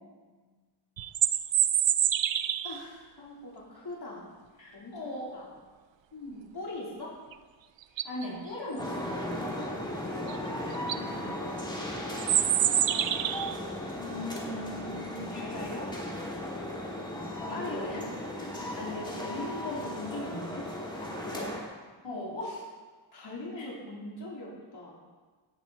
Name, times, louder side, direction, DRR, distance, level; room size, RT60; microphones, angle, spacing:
voice 1, 0.1-0.5 3.2-4.3 4.7-5.5 6.5-7.1 9.8-10.3 14.0-15.9 17.5-18.0 21.1-21.5 23.1-25.0, left 2 dB, 60° left, -5 dB, 3.7 m, -41 dB
sound 1, 1.0-2.8 7.3-7.4 7.8-8.3 10.3-10.4 10.7-11.0 12.2-13.6, right 10 dB, 75° right, 0.6 m, -26 dB
voice 2, 2.6-3.0 4.6-5.3 6.1-6.5 8.0-9.2 11.1-11.3 17.4-18.1 18.4-20.7 22.0-22.6 23.5-23.6, left 1 dB, 80° left, -6 dB, 3.2 m, -39 dB
sound 2, 8.8-21.6, left 1 dB, 10° left, 2.6 m, -36 dB
17.5 x 11.0 x 4.1 m, 1.4 s
wide cardioid pair, 135°, 44 cm